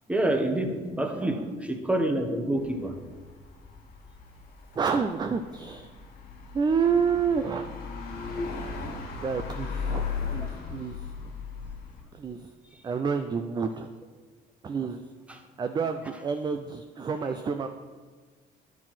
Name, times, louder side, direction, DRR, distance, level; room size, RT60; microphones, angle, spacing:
voice 1, 0.1-2.9 8.1-8.5 15.3-15.4 16.1-16.2, right 1 dB, 5° right, 4 dB, 1.1 m, -28 dB
voice 2, 1.0-1.5 4.8-5.9 6.5-7.8 9.2-11.0 12.1-12.5 12.8-13.9 14.6-15.0 15.6-17.7, right 6 dB, 25° right, 7 dB, 0.4 m, -29 dB
sound 1, 2.6-12.0, left 5 dB, 65° left, 1.9 m, -37 dB
9.9 x 4.7 x 5.8 m, 1.5 s
cardioid pair, 110°, 17 cm